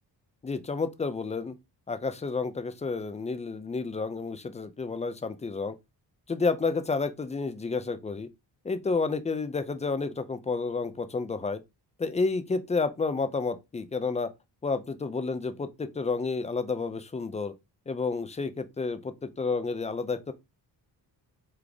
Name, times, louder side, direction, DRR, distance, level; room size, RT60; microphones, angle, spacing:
voice 1, 0.4-1.6 1.9-5.8 6.3-8.3 8.6-11.6 12.0-14.3 14.6-17.5 17.9-20.3, left 4 dB, 20° left, 0.4 m, -30 dB
3.8 x 3.3 x 3.4 m
wide cardioid pair, 135°, 41 cm